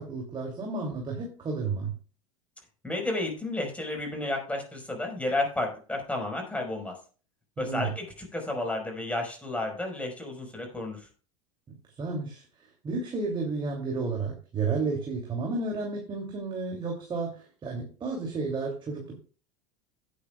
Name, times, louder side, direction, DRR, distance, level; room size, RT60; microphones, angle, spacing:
voice 1, 0.0-1.9 7.6-7.9 12.0-19.1, right 4 dB, 30° right, -1 dB, 3.0 m, -32 dB
voice 2, 2.8-6.9 7.6-8.0 8.3-11.0, left 2 dB, 5° left, 2 dB, 5.1 m, -31 dB
17.0 x 8.3 x 2.4 m, 0.39 s
figure-of-eight pair, 80°, 18 cm